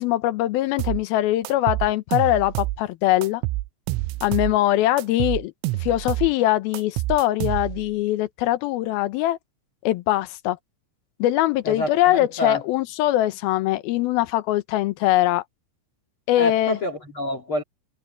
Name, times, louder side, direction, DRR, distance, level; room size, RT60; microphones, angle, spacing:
voice 1, 0.0-3.4 4.2-5.5 5.8-9.4 9.8-10.6 11.2-15.4 16.3-16.8, left 15 dB, 80° left, 2.2 m, -22 dB
sound 1, 0.8-1.0 1.5-2.8 3.2-4.6 5.0-6.3 6.7-7.9, right 19 dB, 85° right, 2.9 m, -27 dB
voice 2, 11.6-12.6 16.4-17.6, left 1 dB, 45° left, 1.7 m, -27 dB
omnidirectional pair, 5.4 m